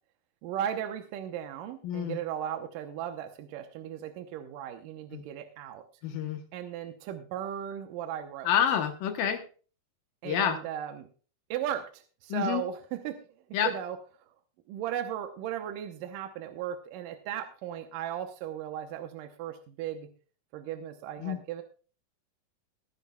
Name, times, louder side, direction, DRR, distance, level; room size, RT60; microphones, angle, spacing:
voice 1, 0.4-5.8 6.5-8.5 10.2-11.1 11.5-13.2 13.6-14.0 14.7-20.1 20.5-21.6, right 10 dB, 75° right, 7 dB, 2.3 m, -36 dB
voice 2, 1.8-2.2 5.1-5.2 6.0-6.4 8.5-9.4 10.2-10.6 12.3-12.6 13.5-13.7 21.2-21.4, left 9 dB, 75° left, 6 dB, 2.6 m, -28 dB
20.5 x 9.7 x 2.3 m, 0.37 s
omnidirectional pair, 4.2 m